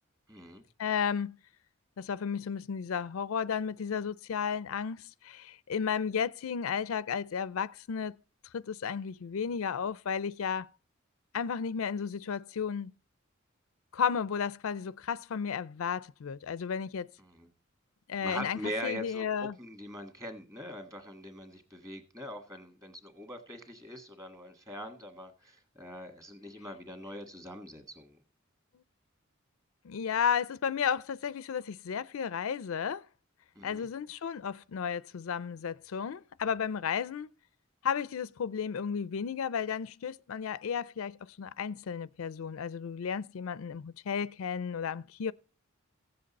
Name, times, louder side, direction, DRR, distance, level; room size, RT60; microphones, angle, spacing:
voice 1, 0.3-0.6 17.2-17.5 18.2-28.2 33.5-33.9, equal, 15° right, 1.6 m, -42 dB
voice 2, 0.8-1.4 2.0-8.2 8.5-10.7 11.3-12.9 13.9-17.1 18.1-19.5 29.8-33.0 33.6-37.3 37.8-45.3, left 7 dB, 85° left, 0.4 m, -33 dB
15.5 x 7.7 x 4.1 m
head